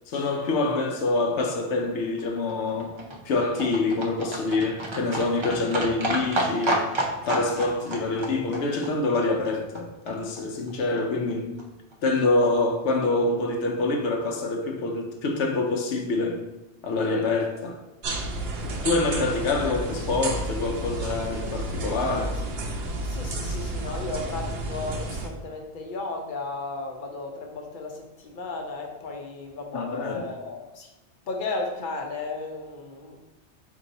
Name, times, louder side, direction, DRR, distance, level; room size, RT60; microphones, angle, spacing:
voice 1, 0.1-3.0 3.2-6.8 7.3-11.6 12.0-16.4 16.8-17.8 18.8-22.4 23.5-23.6 29.7-30.3, left 3 dB, 80° left, 0.9 m, -26 dB
Livestock farm animals working animals, 1.9-10.1 10.4-10.5 10.7-10.8 11.0-11.1 11.3-11.4 11.6-11.7 11.9-12.0 12.2-12.3 12.6-12.7, right 1 dB, 35° right, 0.5 m, -31 dB
sound 1, 18.0-25.3, right 1 dB, 65° right, 0.8 m, -31 dB
voice 2, 18.6-18.9 23.0-30.9 31.3-33.2, left 3 dB, 50° left, 0.8 m, -34 dB
4.6 x 2.7 x 3.9 m
omnidirectional pair, 1.2 m